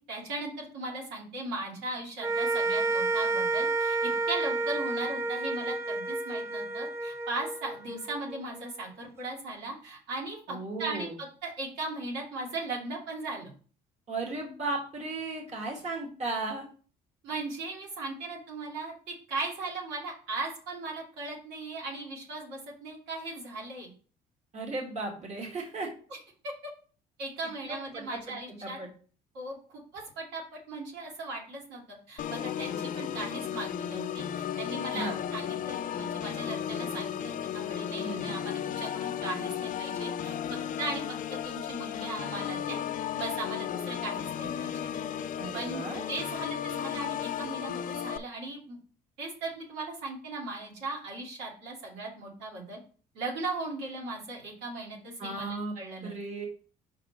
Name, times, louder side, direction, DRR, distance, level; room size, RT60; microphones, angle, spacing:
voice 1, 0.0-13.5 17.2-23.9 26.1-26.2 26.4-26.5 27.2-28.8 29.3-41.0 41.3-42.8 43.2-44.9 45.5-48.8 49.2-52.8 53.1-56.2, right 2 dB, 90° right, -2 dB, 2.6 m, -38 dB
sound 1, 2.2-8.6, right 3 dB, 15° right, 0.4 m, -30 dB
voice 2, 10.5-11.1 14.1-16.6 24.5-25.9 27.7-28.9 34.9-35.2 38.0-38.4 45.4-46.0 55.2-55.7 56.0-56.5, right 2 dB, 40° right, 1 dB, 2.0 m, -35 dB
Organ, 32.2-48.2, left 9 dB, 55° left, 0.5 m, -34 dB
5.5 x 4.1 x 5.0 m, 0.41 s
cardioid pair, 110°, 17 cm